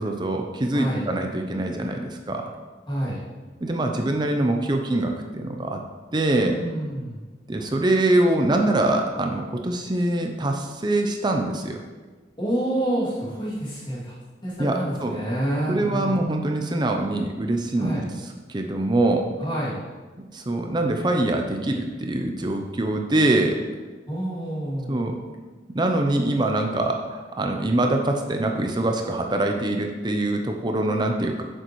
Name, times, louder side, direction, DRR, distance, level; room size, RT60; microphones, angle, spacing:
voice 1, 0.0-2.5 3.6-5.8 6.1-6.6 7.5-11.8 14.6-15.2 15.7-18.0 18.5-19.3 20.3-23.6 24.9-25.2 25.7-31.4, right 2 dB, 25° right, 4 dB, 0.5 m, -24 dB
voice 2, 0.7-1.1 2.9-3.2 6.4-7.2 12.4-16.2 17.8-18.1 19.4-19.8 24.1-25.0, right 1 dB, 25° left, -7 dB, 2.5 m, -28 dB
8.5 x 6.7 x 3.1 m, 1.3 s
head